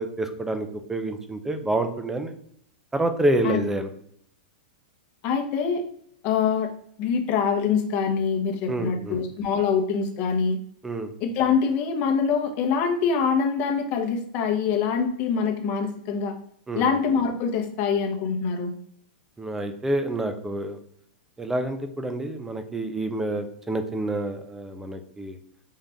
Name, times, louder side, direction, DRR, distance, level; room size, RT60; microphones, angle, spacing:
voice 1, 0.0-2.3 2.9-3.9 8.7-9.2 10.8-11.1 16.7-16.9 19.4-20.8 21.4-25.4, right 1 dB, 5° right, 8 dB, 0.4 m, -28 dB
voice 2, 5.2-5.8 6.2-6.7 7.0-10.6 11.2-16.3 16.7-18.7, left 6 dB, 35° left, 2 dB, 0.9 m, -24 dB
5.5 x 2.5 x 3.4 m, 0.66 s
supercardioid pair, 155°, 5 cm